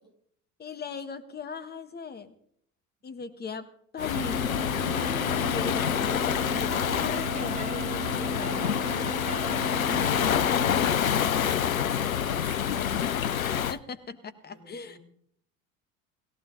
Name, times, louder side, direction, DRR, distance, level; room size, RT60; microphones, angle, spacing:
voice 1, 0.6-2.3 3.0-3.7 3.9-4.6 4.8-8.9 9.9-10.1 13.5-15.0, left 5 dB, 25° left, 11 dB, 1.4 m, -38 dB
Waves surf, 4.0-13.8, left 9 dB, 90° left, 0.5 m, -27 dB
sound 1, 4.1-11.0, right 5 dB, 15° right, 1.4 m, -36 dB
voice 2, 10.8-13.1 14.5-15.0, right 3 dB, 45° right, 4 dB, 3.9 m, -45 dB
17.5 x 15.0 x 3.9 m, 0.64 s
figure-of-eight pair, 70°, 40 cm